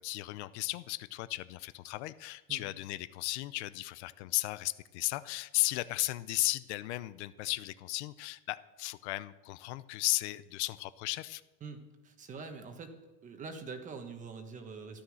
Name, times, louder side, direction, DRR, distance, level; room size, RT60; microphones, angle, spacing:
voice 1, 0.0-11.4, left 18 dB, 70° left, 15 dB, 0.6 m, -35 dB
voice 2, 11.6-12.9 13.2-15.0, right 4 dB, 20° right, 7 dB, 1.3 m, -44 dB
13.0 x 11.5 x 6.3 m, 1.1 s
supercardioid pair, 165°, 36 cm